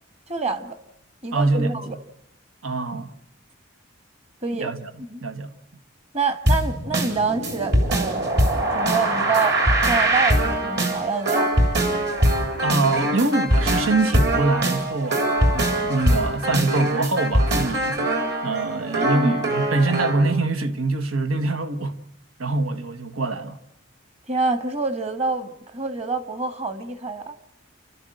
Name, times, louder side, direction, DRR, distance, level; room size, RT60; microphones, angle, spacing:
voice 1, 0.3-0.8 1.2-2.0 4.4-4.7 5.0-5.3 6.1-8.3 8.7-9.6 9.9-11.5 19.1-19.4 24.3-27.3, right 4 dB, 30° right, 1.5 m, -26 dB
voice 2, 1.3-1.8 2.6-3.1 4.5-4.9 5.2-5.5 12.6-15.3 15.5-18.2 18.4-22.0 22.4-23.6, right 3 dB, 90° right, 1.4 m, -24 dB
sound 1, 6.5-20.3, right 1 dB, 55° right, 3.7 m, -22 dB
29.0 x 13.0 x 7.8 m
head